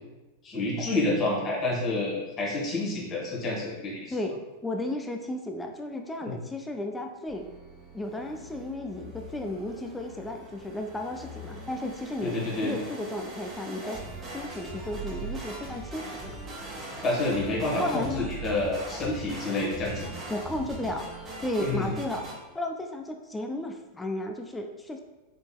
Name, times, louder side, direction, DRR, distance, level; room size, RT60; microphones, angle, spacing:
voice 1, 0.4-4.1 6.2-6.3 12.2-12.8 13.8-13.9 17.0-20.1 21.6-22.0, left 2 dB, 30° left, -4 dB, 1.2 m, -29 dB
voice 2, 4.1-7.5 7.9-12.4 12.6-14.0 14.3-16.4 17.8-18.3 20.3-21.1 21.4-22.3 22.5-25.0, left 1 dB, 10° left, 3 dB, 0.4 m, -34 dB
sound 1, 7.3-22.4, right 2 dB, 25° right, 1.2 m, -40 dB
5.0 x 3.3 x 2.2 m, 1.1 s
figure-of-eight pair, 90°, 0 cm